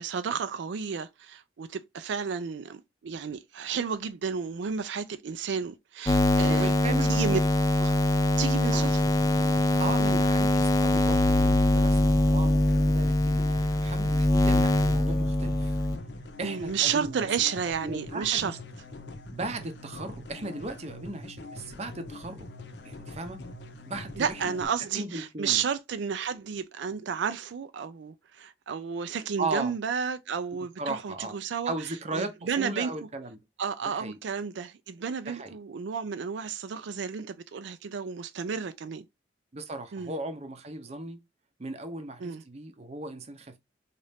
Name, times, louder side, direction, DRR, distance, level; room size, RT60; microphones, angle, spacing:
voice 1, 0.0-6.7 7.1-7.4 7.8-8.0 8.4-9.0 10.0-10.2 16.4-18.5 24.2-31.7 32.1-32.9 33.6-39.1 39.9-40.1 42.2-42.4, right 6 dB, 75° right, 0.4 m, -32 dB
sound 1, 6.1-16.0, left 1 dB, 20° left, 0.4 m, -23 dB
voice 2, 6.5-7.2 8.7-8.9 9.8-15.8 16.4-17.3 17.8-18.6 19.3-22.4 22.8-23.4 23.9-24.4 24.9-25.6 29.4-29.8 30.8-31.3 31.7-33.4 33.8-34.2 35.3-35.5 39.5-41.2 41.6-43.6, right 2 dB, 35° right, 0.6 m, -36 dB
sound 2, 8.7-24.7, left 2 dB, 65° left, 0.6 m, -44 dB
4.0 x 2.5 x 3.3 m
head